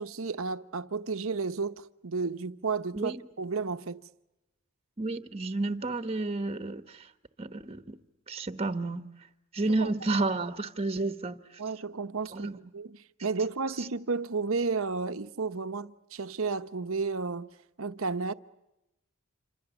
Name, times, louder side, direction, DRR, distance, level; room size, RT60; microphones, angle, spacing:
voice 1, 0.0-4.0 9.6-9.9 11.6-17.5 17.8-18.3, right 4 dB, 70° right, 0.9 m, -32 dB
voice 2, 5.0-7.1 7.4-8.0 8.3-9.1 9.5-11.6 12.3-12.6 13.8-13.9, right 2 dB, 30° right, 1.1 m, -31 dB
27.5 x 26.0 x 7.2 m
head